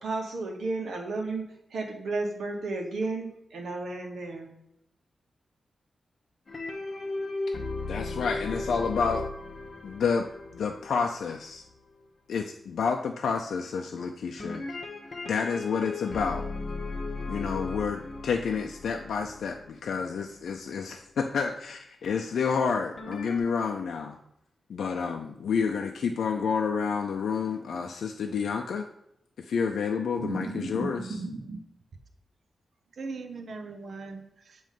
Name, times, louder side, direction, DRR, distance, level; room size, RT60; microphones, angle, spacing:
voice 1, 0.0-4.5, right 3 dB, 90° right, 0 dB, 1.4 m, -33 dB
sound 1, 6.5-11.8 14.4-20.4 23.0-23.4, left 3 dB, 45° left, 0.9 m, -36 dB
voice 2, 7.9-9.3 9.8-10.3 10.5-11.6 12.3-14.6 15.3-16.4 17.3-24.2 24.7-28.8 29.5-31.0, left 5 dB, 85° left, 3 dB, 0.4 m, -29 dB
voice 3, 30.2-31.6 33.0-34.6, right 3 dB, 65° right, 5 dB, 0.7 m, -36 dB
7.5 x 3.1 x 5.1 m, 0.77 s
cardioid pair, 90°, 0 cm